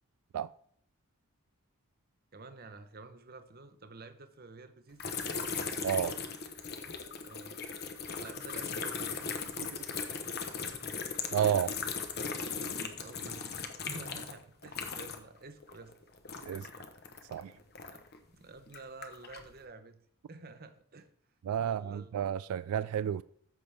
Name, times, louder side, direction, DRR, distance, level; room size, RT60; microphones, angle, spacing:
voice 1, 2.3-5.0 7.2-9.3 12.8-13.4 13.9-15.9 17.8-18.1 18.3-20.0 20.3-21.1 21.6-22.1, right 3 dB, 45° right, 0.8 m, -50 dB
sound 1, 5.0-15.4 15.6-18.2 18.7-19.5, left 5 dB, 45° left, 1.0 m, -38 dB
voice 2, 5.8-6.2 9.6-9.7 11.3-11.7 16.4-16.7 17.3-17.5 21.5-23.2, right 9 dB, 85° right, 0.3 m, -31 dB
14.0 x 6.1 x 3.4 m
head